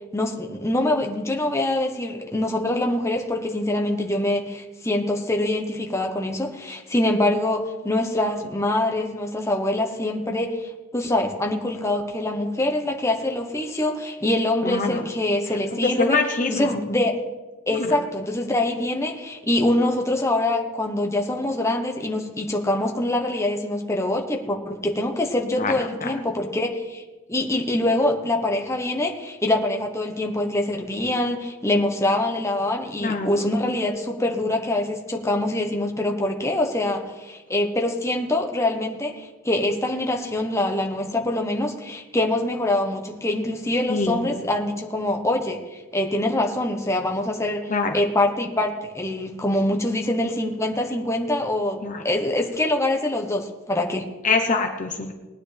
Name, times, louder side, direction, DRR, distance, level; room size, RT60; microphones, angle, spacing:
voice 1, 0.1-16.2 16.5-17.2 17.7-27.0 27.3-54.1, left 1 dB, 15° left, 2 dB, 1.1 m, -24 dB
voice 2, 14.6-15.1 15.5-16.8 17.8-18.0 25.5-26.1 33.0-33.4 43.9-44.3 47.7-48.0 51.8-52.0 54.2-55.2, left 3 dB, 35° left, 4 dB, 0.9 m, -25 dB
19.5 x 9.7 x 3.4 m, 1.2 s
head